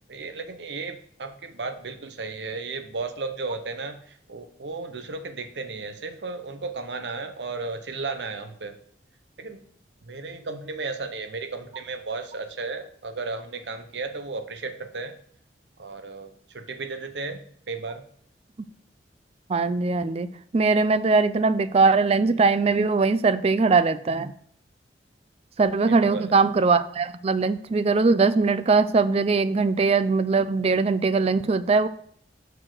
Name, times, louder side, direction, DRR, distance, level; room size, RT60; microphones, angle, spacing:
voice 1, 0.1-8.8 9.4-9.6 10.0-15.2 15.8-17.4 17.7-18.0 25.9-26.4, right 3 dB, 75° right, 9 dB, 0.8 m, -34 dB
voice 2, 19.5-24.3 25.6-31.9, right 4 dB, 35° right, 13 dB, 0.4 m, -21 dB
6.3 x 4.5 x 6.2 m, 0.65 s
head